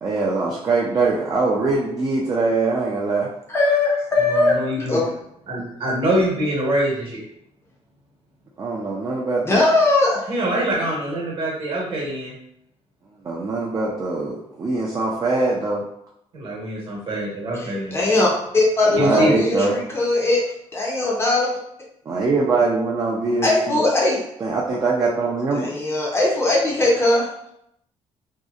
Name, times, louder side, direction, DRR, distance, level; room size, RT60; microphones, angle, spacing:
voice 1, 0.0-3.3 8.6-9.6 13.2-15.8 18.9-19.8 22.1-23.8 24.4-25.7, right 3 dB, 30° right, -4 dB, 0.3 m, -22 dB
voice 2, 3.5-5.0 9.4-10.3 17.5-20.4 20.7-21.5 23.4-24.2 25.5-27.3, left 2 dB, 20° left, -3 dB, 0.5 m, -20 dB
voice 3, 4.2-5.0 5.5-7.2 10.3-12.3 16.3-18.0 19.0-19.3, right 1 dB, 50° right, -4 dB, 0.9 m, -24 dB
2.7 x 2.0 x 2.3 m, 0.75 s
cardioid pair, 155°, 12 cm